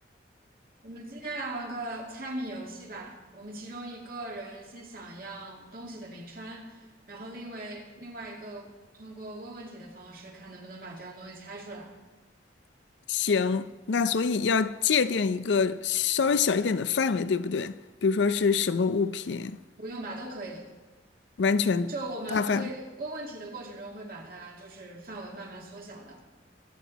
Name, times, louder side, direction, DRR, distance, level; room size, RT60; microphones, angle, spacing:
voice 1, 0.8-11.9 19.8-20.7 21.9-26.2, right 2 dB, 55° right, 2.1 m, -40 dB
voice 2, 13.1-19.6 21.4-21.9 22.3-22.7, left 5 dB, 75° left, 0.5 m, -25 dB
22.5 x 8.0 x 4.1 m
head